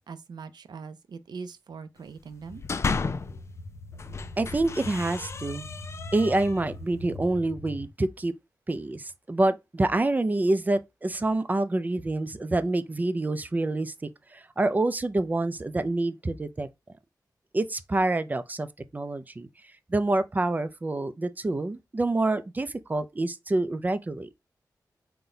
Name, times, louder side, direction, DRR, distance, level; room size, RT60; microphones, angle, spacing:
voice 1, 0.1-2.6, right 5 dB, 75° right, 0.5 m, -41 dB
sound 1, 2.3-3.4 3.9-6.7, left 4 dB, 40° left, 0.3 m, -33 dB
sound 2, 2.5-7.9, left 2 dB, 70° left, 0.9 m, -42 dB
voice 2, 4.4-5.6 6.1-8.3 8.7-13.9 14.3-16.7 17.5-18.7 18.9-19.5 19.9-24.3, right 2 dB, 25° right, 0.4 m, -27 dB
4.0 x 2.2 x 3.8 m
wide cardioid pair, 90°, 7 cm